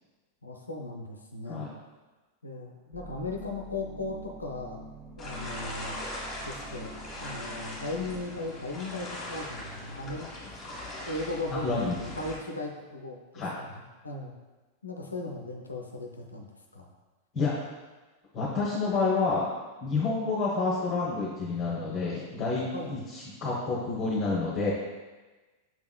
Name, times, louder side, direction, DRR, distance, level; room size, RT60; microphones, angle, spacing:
voice 1, 0.4-1.7 2.4-4.8 5.2-6.0 6.5-6.9 7.2-10.6 11.1-13.2 13.6-14.3 14.8-16.9 22.7-23.0, left 2 dB, 80° left, 1 dB, 0.4 m, -37 dB
sound 1, 2.9-8.2, right 3 dB, 25° right, 0.7 m, -46 dB
sound 2, 5.2-12.4, left 1 dB, 10° left, 1.5 m, -40 dB
voice 2, 11.5-11.9 13.3-13.5 17.3-17.5 18.3-19.5 19.8-24.7, left 4 dB, 30° left, -7 dB, 0.9 m, -29 dB
5.9 x 3.5 x 2.2 m, 1.2 s
figure-of-eight pair, 90°, 0 cm